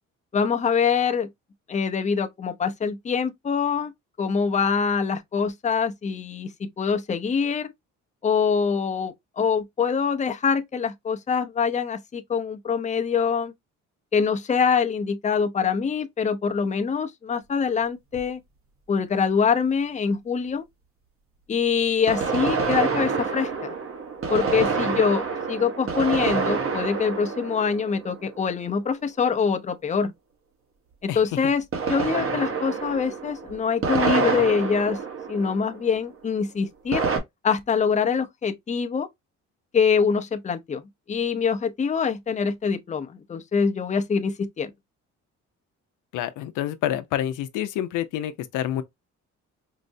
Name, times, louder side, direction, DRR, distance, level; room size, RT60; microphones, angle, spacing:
voice 1, 0.3-1.3 1.7-3.9 4.2-7.7 8.2-13.5 14.1-18.4 18.9-20.6 21.5-23.7 24.3-30.1 31.0-31.6 31.9-35.0 35.3-37.1 37.4-39.1 39.7-40.8 41.1-44.7, left 6 dB, 25° left, 0.5 m, -24 dB
sound 1, 18.1-18.2 22.1-28.6 31.7-36.0 36.9-37.2, right 5 dB, 45° right, 1.0 m, -27 dB
voice 2, 46.1-48.8, left 11 dB, 90° left, 0.5 m, -28 dB
4.6 x 2.0 x 2.6 m
cardioid pair, 90°, 30 cm